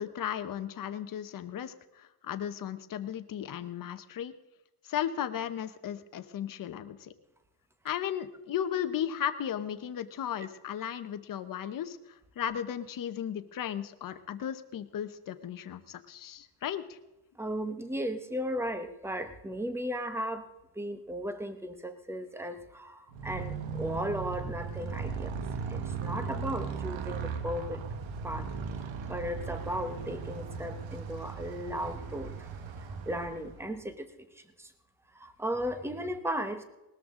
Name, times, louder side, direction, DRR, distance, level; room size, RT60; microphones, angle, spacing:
voice 1, 0.0-4.3 4.8-7.1 7.8-17.0, left 9 dB, 40° left, 11 dB, 0.9 m, -35 dB
voice 2, 17.4-20.5 20.7-25.4 25.7-27.8 28.2-28.5 29.1-32.5 33.1-34.7 35.1-36.6, equal, 5° right, 9 dB, 0.9 m, -36 dB
Motorcycle, 23.1-33.8, right 5 dB, 65° right, 1.4 m, -37 dB
20.0 x 13.5 x 3.8 m, 1.0 s
cardioid pair, 175°, 49 cm